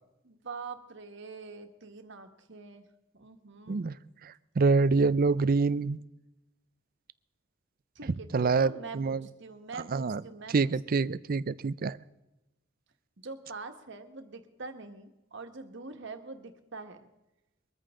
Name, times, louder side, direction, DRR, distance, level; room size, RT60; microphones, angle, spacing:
voice 1, 0.2-2.9 3.1-3.9 5.7-6.0 7.9-11.0 13.2-17.0, right 4 dB, 65° right, 5 dB, 1.6 m, -44 dB
voice 2, 4.2-6.0 8.3-9.3 9.9-10.2 10.5-12.0, right 4 dB, 50° right, 17 dB, 0.5 m, -26 dB
22.5 x 14.0 x 3.8 m, 0.97 s
head